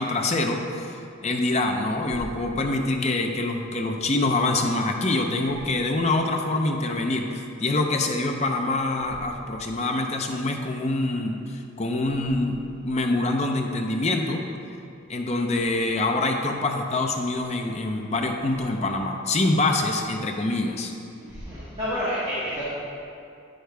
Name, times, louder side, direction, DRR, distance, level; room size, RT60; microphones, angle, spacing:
voice 1, 0.0-14.4 15.1-20.9, left 2 dB, 30° left, 2 dB, 0.6 m, -25 dB
voice 2, 21.3-22.6, equal, 30° right, -11 dB, 1.5 m, -29 dB
9.1 x 6.4 x 3.4 m, 2.6 s
head